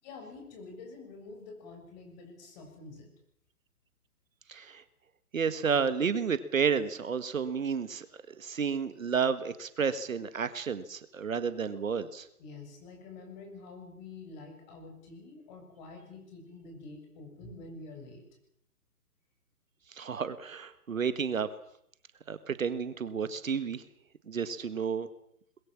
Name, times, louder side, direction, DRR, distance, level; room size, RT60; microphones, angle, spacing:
voice 1, 0.0-3.1 12.4-18.2, left 3 dB, 30° left, 3 dB, 6.8 m, -47 dB
voice 2, 4.5-4.8 5.3-8.1 8.4-12.3 19.9-21.5 22.3-23.8 24.3-25.1, right 6 dB, 60° right, 13 dB, 1.7 m, -31 dB
22.5 x 21.5 x 7.4 m, 0.73 s
figure-of-eight pair, 135°, 45 cm